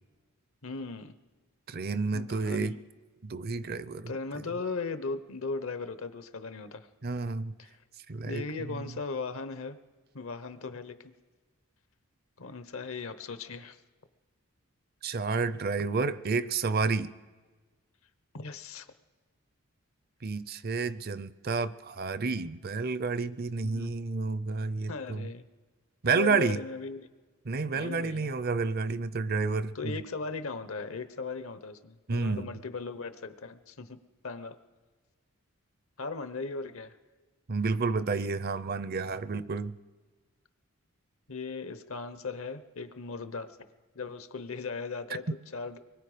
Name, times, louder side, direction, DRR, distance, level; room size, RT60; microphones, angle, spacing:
voice 1, 0.6-1.1 2.1-2.8 4.1-6.9 7.6-7.7 8.3-9.8 10.1-11.0 12.4-13.8 18.3-18.9 23.6-23.9 24.9-25.4 26.1-27.1 27.7-28.3 29.7-34.0 34.2-34.6 36.0-36.9 41.3-43.5 43.9-45.8, left 4 dB, 70° left, 11 dB, 1.0 m, -38 dB
voice 2, 1.7-2.8 3.2-4.5 7.0-7.5 8.1-8.4 8.7-8.8 15.0-17.1 20.2-25.3 26.0-26.6 27.5-29.9 32.1-32.5 37.5-39.7, right 4 dB, 45° right, 15 dB, 0.5 m, -30 dB
24.0 x 21.0 x 5.1 m, 1.4 s
head